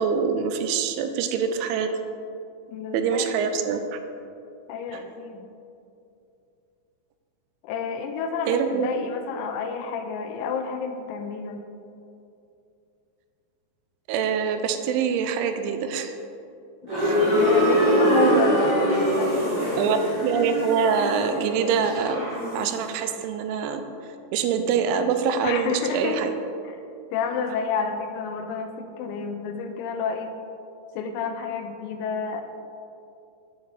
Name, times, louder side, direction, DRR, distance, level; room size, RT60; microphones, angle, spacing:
voice 1, 0.0-1.9 2.9-4.0 4.9-5.0 8.5-8.9 14.1-16.1 16.9-17.2 17.8-18.4 19.7-22.3 22.5-23.8 24.3-26.3, right 6 dB, 85° right, 8 dB, 3.0 m, -25 dB
voice 2, 2.7-3.3 4.7-5.5 7.6-11.6 16.8-20.0 25.4-26.2 26.6-26.8 27.1-30.3 30.9-32.4, left 5 dB, 85° left, 6 dB, 2.9 m, -30 dB
sound 1, 16.9-22.8, equal, 60° right, 1.1 m, -23 dB
9.1 x 7.7 x 4.0 m, 2.6 s
omnidirectional pair, 5.5 m